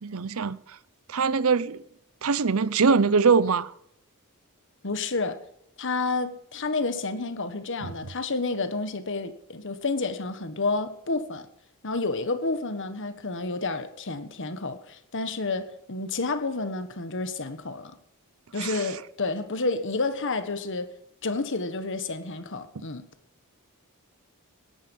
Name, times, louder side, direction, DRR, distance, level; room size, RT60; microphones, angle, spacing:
voice 1, 0.0-0.8 1.1-1.8 2.2-3.7 7.8-7.9 18.6-18.9, right 5 dB, 70° right, 0.7 m, -23 dB
voice 2, 4.8-5.4 5.8-11.5 11.8-17.9 18.5-20.9 21.2-23.1, left 3 dB, 55° left, 1.4 m, -30 dB
18.0 x 11.0 x 5.5 m
head